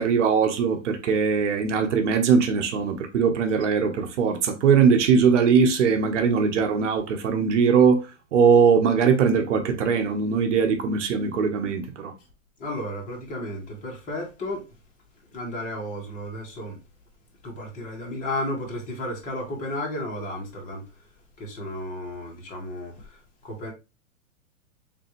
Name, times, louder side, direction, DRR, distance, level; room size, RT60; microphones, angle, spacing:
voice 1, 0.0-8.1 8.3-12.1, right 6 dB, 65° right, 1.0 m, -21 dB
voice 2, 12.6-14.6 15.3-16.8 17.4-20.8 21.4-22.9 23.4-23.7, left 1 dB, 20° left, 1.4 m, -33 dB
3.8 x 3.4 x 3.0 m
hypercardioid pair, 145°, 39 cm